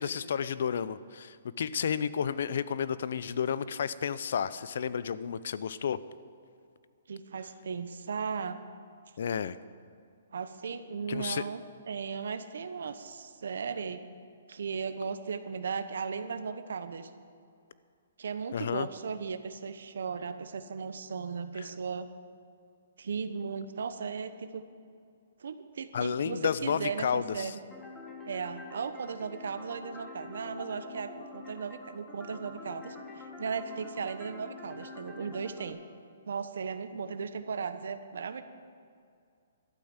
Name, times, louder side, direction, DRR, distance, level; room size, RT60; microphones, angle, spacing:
voice 1, 0.0-6.0 9.2-9.6 11.1-11.4 18.5-18.9 21.6-21.7 25.9-27.5, left 7 dB, 60° left, 16 dB, 0.5 m, -31 dB
voice 2, 7.1-8.6 10.3-14.0 14.5-17.1 18.2-22.1 23.0-24.6 25.4-27.5 28.3-35.8 36.2-38.4, right 5 dB, 70° right, 11 dB, 0.9 m, -36 dB
sound 1, 27.7-35.7, left 3 dB, 5° left, 1.1 m, -46 dB
12.0 x 8.8 x 8.1 m, 2.3 s
hypercardioid pair, 170°, 0 cm